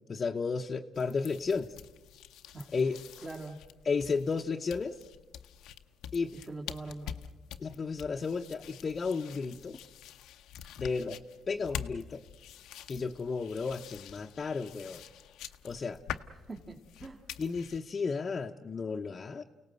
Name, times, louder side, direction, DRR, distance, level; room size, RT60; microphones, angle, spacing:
voice 1, 0.1-1.7 2.7-2.9 3.8-5.0 6.1-6.3 7.6-9.8 10.8-12.2 12.9-15.0 15.6-16.0 17.4-19.4, left 4 dB, 40° left, 2 dB, 0.8 m, -33 dB
sound 1, 0.9-17.8, left 10 dB, 90° left, 0.8 m, -46 dB
voice 2, 2.5-2.9 3.2-3.6 6.3-7.2 16.5-17.2, right 2 dB, 30° right, -2 dB, 2.3 m, -43 dB
29.5 x 18.0 x 7.9 m, 1.3 s
cardioid pair, 90°, 0 cm